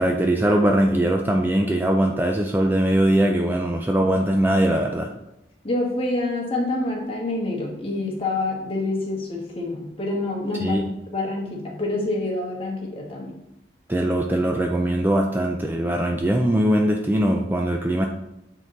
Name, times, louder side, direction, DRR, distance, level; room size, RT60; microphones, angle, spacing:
voice 1, 0.0-5.1 10.6-10.9 13.9-18.1, right 1 dB, 10° right, 2 dB, 0.3 m, -21 dB
voice 2, 5.6-10.8 11.1-13.3, left 2 dB, 30° left, -1 dB, 1.3 m, -27 dB
7.4 x 3.8 x 3.9 m, 0.86 s
head